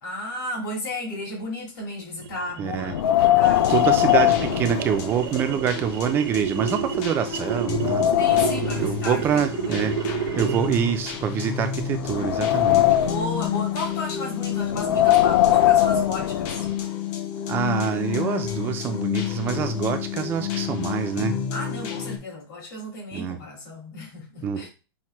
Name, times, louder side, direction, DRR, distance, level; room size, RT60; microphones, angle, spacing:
voice 1, 0.0-3.8 8.2-10.0 10.6-10.7 12.9-16.7 21.5-24.7, left 1 dB, 55° left, 2.1 m, -33 dB
sound 1, 2.2-10.9, right 9 dB, 70° right, 0.6 m, -31 dB
voice 2, 2.6-2.9 3.7-8.1 8.8-9.9 10.4-12.8 17.5-21.4 23.1-23.4 24.4-24.7, right 8 dB, 15° right, 0.4 m, -26 dB
Wind, 2.8-5.5 5.8-5.9 6.6-6.7 7.2-8.8 9.7-11.2 11.7-13.4 14.6-16.7, left 13 dB, 75° left, 0.4 m, -21 dB
sound 2, 3.4-22.2, left 9 dB, 35° left, 0.6 m, -31 dB
5.7 x 2.1 x 3.0 m
supercardioid pair, 160°, 13 cm